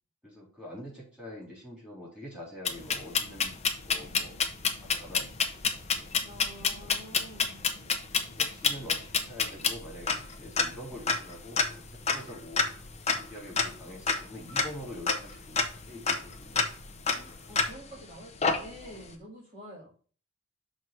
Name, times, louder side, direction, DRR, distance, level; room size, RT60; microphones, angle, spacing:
voice 1, 0.2-3.5 3.8-4.4 4.8-6.1 6.8-7.0 7.7-7.9 8.4-12.7 13.2-16.6, left 1 dB, 5° right, -5 dB, 3.6 m, -45 dB
sound 1, 2.6-18.0 18.4-19.0, left 5 dB, 30° left, 0.8 m, -29 dB
voice 2, 6.2-7.7 17.1-19.9, equal, 25° right, -6 dB, 2.3 m, -48 dB
6.1 x 4.1 x 6.0 m, 0.40 s
head